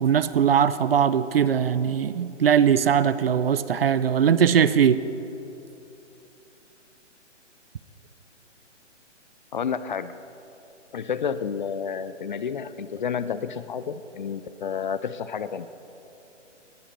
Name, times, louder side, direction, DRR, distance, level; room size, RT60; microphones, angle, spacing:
voice 1, 0.0-5.0, right 8 dB, 50° right, 15 dB, 0.7 m, -20 dB
voice 2, 9.5-10.2 10.9-15.7, left 7 dB, 40° left, 14 dB, 0.6 m, -30 dB
19.5 x 16.0 x 4.3 m, 3.0 s
figure-of-eight pair, 135°, 37 cm